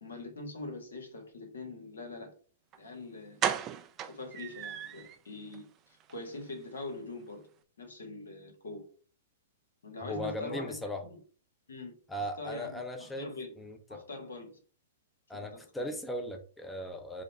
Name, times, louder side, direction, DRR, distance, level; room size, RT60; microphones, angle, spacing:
voice 1, 0.0-2.3 2.8-3.4 4.0-7.4 7.8-8.8 9.8-10.7 11.1-11.2 11.7-13.5 13.9-14.6 15.5-15.9, left 2 dB, 80° left, 4 dB, 1.4 m, -43 dB
sound 1, 2.7-2.8 3.4-5.2 5.5-5.6 6.0-6.1 6.4-6.5, right 9 dB, 30° right, 0.4 m, -35 dB
voice 2, 10.0-11.0 12.1-13.3 13.6-14.0 15.3-17.2, equal, 5° left, 4 dB, 0.6 m, -38 dB
4.8 x 2.2 x 4.2 m, 0.40 s
hypercardioid pair, 110°, 0 cm